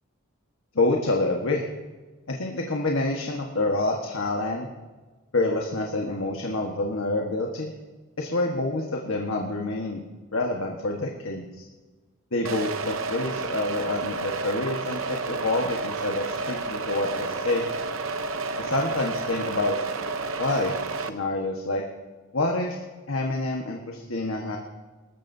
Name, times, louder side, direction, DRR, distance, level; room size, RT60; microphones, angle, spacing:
voice 1, 0.7-1.6 2.3-4.7 5.3-7.7 8.2-10.0 10.3-11.6 12.3-17.7 18.6-19.8 20.4-21.8 22.3-22.7 23.1-24.6, left 2 dB, 70° left, 0 dB, 1.5 m, -27 dB
sound 1, 12.4-21.1, right 3 dB, 75° right, 0.9 m, -31 dB
25.0 x 14.0 x 2.8 m, 1.3 s
head